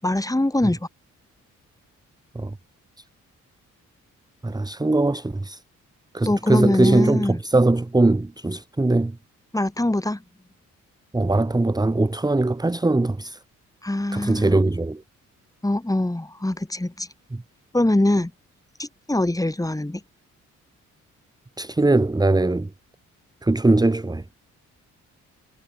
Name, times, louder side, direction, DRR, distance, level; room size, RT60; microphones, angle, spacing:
voice 1, 0.0-0.8 6.3-7.4 9.5-10.2 13.8-14.6 15.6-17.1 17.7-18.3 18.8-20.0, left 1 dB, 10° left, 5.6 m, -23 dB
voice 2, 4.4-5.6 6.1-9.2 11.1-13.4 14.1-15.0 17.3-17.4 21.6-22.7 23.4-24.2, right 2 dB, 10° right, 1.4 m, -21 dB
cardioid pair, 80°, 32 cm